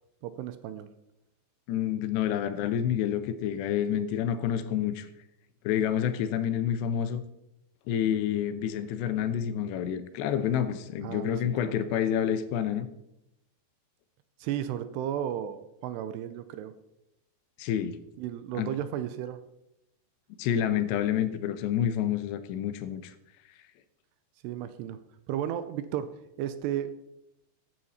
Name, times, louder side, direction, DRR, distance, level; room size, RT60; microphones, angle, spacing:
voice 1, 0.2-0.9 11.0-11.4 11.6-11.8 14.4-16.7 18.2-19.4 24.4-25.0 25.3-26.1 26.4-26.9, right 10 dB, 80° right, 12 dB, 2.7 m, -34 dB
voice 2, 1.7-5.1 5.6-7.2 7.9-12.9 17.6-18.0 18.6-18.7 20.4-23.1, left 9 dB, 80° left, 10 dB, 2.9 m, -28 dB
14.5 x 9.6 x 4.2 m, 0.84 s
omnidirectional pair, 5.1 m